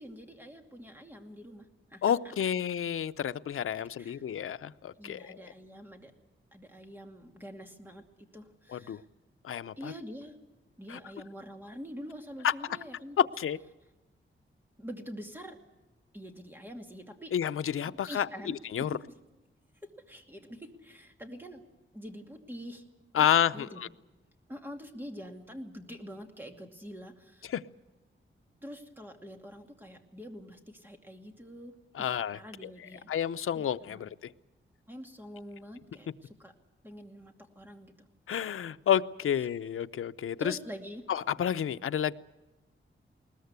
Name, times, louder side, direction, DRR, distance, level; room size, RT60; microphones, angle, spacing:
voice 1, 0.0-2.1 4.0-4.2 5.0-6.1 6.5-9.1 9.8-10.4 10.8-13.2 14.8-15.6 16.1-17.3 17.9-19.1 19.8-21.6 21.9-22.8 23.2-23.9 24.5-27.5 28.6-31.7 32.0-33.1 33.5-34.0 34.9-36.5 36.8-38.1 40.4-41.0, equal, 10° right, 4 dB, 2.5 m, -45 dB
voice 2, 2.0-5.4 8.7-9.0 9.4-9.9 10.9-11.0 12.4-12.5 13.2-13.6 17.3-19.0 23.1-23.9 27.5-27.6 31.9-32.4 33.1-34.3 38.3-40.6 41.1-42.1, left 9 dB, 90° left, 11 dB, 0.6 m, -30 dB
21.0 x 20.0 x 8.1 m, 1.1 s
wide cardioid pair, 145°, 21 cm